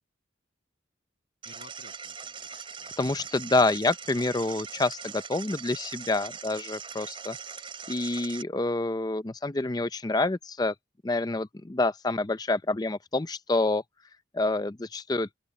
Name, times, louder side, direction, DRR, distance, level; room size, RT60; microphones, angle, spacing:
voice 1, 1.4-3.5, left 2 dB, 60° left, 7.9 m, -56 dB
sound 1, 1.4-8.4, right 6 dB, 30° right, 3.3 m, -41 dB
voice 2, 3.0-7.4 7.9-10.7 11.0-13.8 14.3-15.3, left 2 dB, 20° left, 0.5 m, -27 dB
open air
head